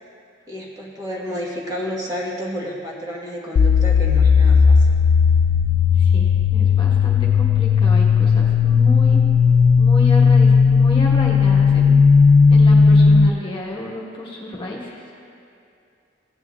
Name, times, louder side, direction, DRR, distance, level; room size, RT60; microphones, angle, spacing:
voice 1, 0.5-4.9, equal, 20° right, -4 dB, 1.3 m, -30 dB
sound 1, 3.6-13.3, left 5 dB, 75° left, 0.3 m, -14 dB
voice 2, 6.0-9.2 9.8-12.0 12.5-14.9, left 1 dB, 25° left, -4 dB, 1.2 m, -31 dB
15.5 x 9.4 x 2.4 m, 2.6 s
head